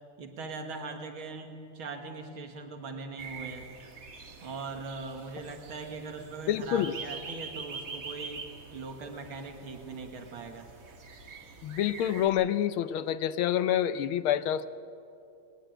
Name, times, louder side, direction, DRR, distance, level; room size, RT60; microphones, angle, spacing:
voice 1, 0.2-3.7 4.4-8.4 8.7-10.7, right 3 dB, 80° right, 4 dB, 2.4 m, -40 dB
sound 1, 3.2-12.3, right 4 dB, 45° right, 1.9 m, -45 dB
voice 2, 6.5-6.9 11.6-14.7, left 10 dB, 85° left, 13 dB, 1.6 m, -27 dB
20.0 x 18.0 x 9.1 m, 2.6 s
omnidirectional pair, 2.3 m